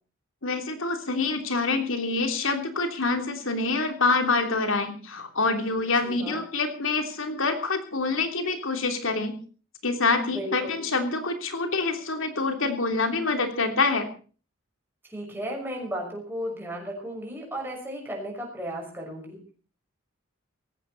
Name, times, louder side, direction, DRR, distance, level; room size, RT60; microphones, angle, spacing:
voice 1, 0.4-9.4 9.8-14.1, left 3 dB, 70° left, 6 dB, 3.2 m, -26 dB
voice 2, 6.0-6.5 10.3-10.8 15.0-19.5, equal, 10° right, -1 dB, 6.0 m, -35 dB
17.5 x 15.5 x 4.2 m, 0.38 s
head